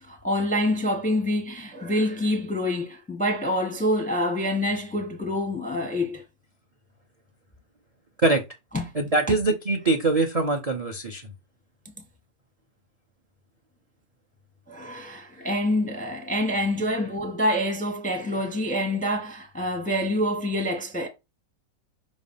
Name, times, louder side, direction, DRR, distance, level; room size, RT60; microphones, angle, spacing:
voice 1, 0.0-6.2 8.7-8.9 9.3-9.4 14.7-21.1, left 1 dB, 5° left, 0.6 m, -26 dB
voice 2, 8.9-11.2, right 3 dB, 35° right, 0.6 m, -23 dB
5.3 x 3.2 x 5.5 m
omnidirectional pair, 1.9 m